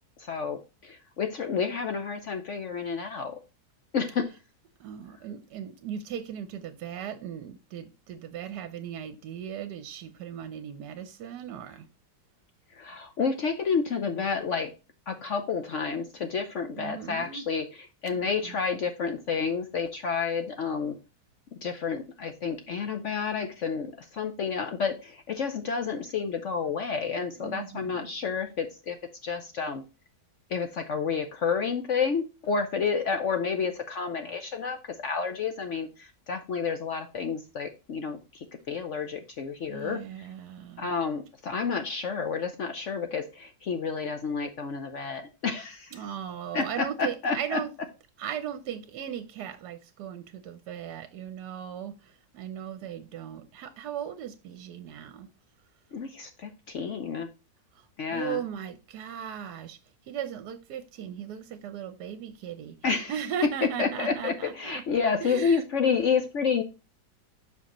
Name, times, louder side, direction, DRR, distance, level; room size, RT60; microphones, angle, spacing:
voice 1, 0.2-3.4 3.9-4.3 12.7-14.7 15.1-21.0 21.6-29.0 29.2-29.8 30.5-40.0 40.8-46.0 46.5-47.6 55.9-57.3 58.0-58.4 62.8-63.1 63.8-66.6, left 5 dB, 60° left, 0.8 m, -30 dB
voice 2, 4.8-11.9 16.8-17.4 18.1-18.6 27.4-28.0 39.7-40.9 45.9-47.7 48.2-55.3 57.7-59.8 60.0-64.8 65.2-65.7, right 9 dB, 75° right, 1.2 m, -37 dB
7.4 x 5.6 x 3.0 m
omnidirectional pair, 1.9 m